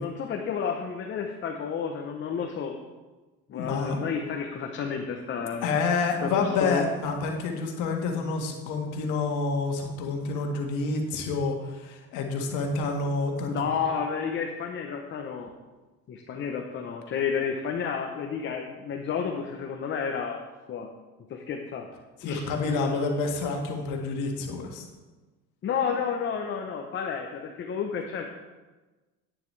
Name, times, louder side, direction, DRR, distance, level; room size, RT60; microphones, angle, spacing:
voice 1, 0.0-2.7 3.5-5.7 6.2-6.9 13.5-15.5 16.1-20.4 20.7-20.9 21.3-21.9 22.2-22.4 22.7-23.0 25.6-28.3, left 6 dB, 40° left, 2 dB, 0.8 m, -31 dB
voice 2, 3.5-4.0 5.6-13.6 22.2-24.8, left 4 dB, 80° left, 2 dB, 1.6 m, -28 dB
10.5 x 9.1 x 3.3 m, 1.2 s
cardioid pair, 135°, 30 cm